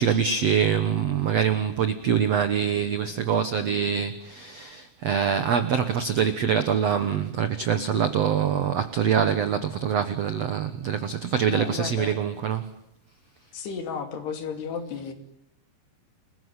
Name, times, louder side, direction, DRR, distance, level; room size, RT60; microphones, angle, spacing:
voice 1, 0.0-12.7, right 7 dB, 80° right, 10 dB, 1.4 m, -24 dB
voice 2, 11.5-12.2 13.5-15.1, left 6 dB, 75° left, 7 dB, 4.8 m, -33 dB
29.5 x 21.0 x 9.7 m, 0.78 s
omnidirectional pair, 4.8 m